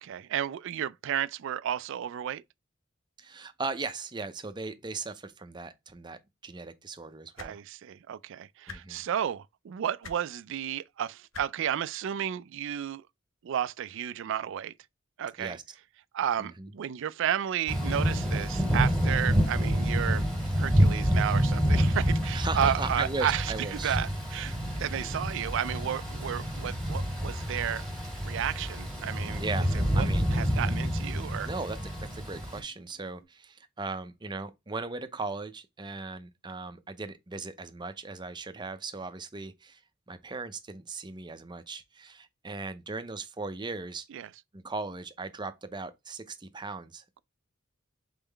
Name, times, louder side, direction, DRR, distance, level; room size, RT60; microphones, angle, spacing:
voice 1, 0.0-2.4 7.4-13.0 13.4-14.7 15.2-15.6 16.1-27.8 28.2-29.4 29.7-31.5 44.1-44.3, right 9 dB, 65° right, 0.3 m, -32 dB
voice 2, 3.2-7.6 8.7-9.0 15.4-15.6 16.4-16.7 22.3-24.0 29.4-29.7 29.9-30.3 31.4-39.8 40.1-44.1 44.5-47.2, right 3 dB, 20° right, 0.6 m, -38 dB
sound 1, 7.3-7.5 8.6-8.8 10.0-10.2 11.3-11.4 12.7-12.8, left 4 dB, 75° left, 0.8 m, -42 dB
Thunder / Rain, 17.7-32.6, equal, ahead, 1.7 m, -28 dB
sound 2, 24.4-33.2, left 11 dB, 45° left, 1.6 m, -60 dB
4.0 x 3.7 x 3.3 m
head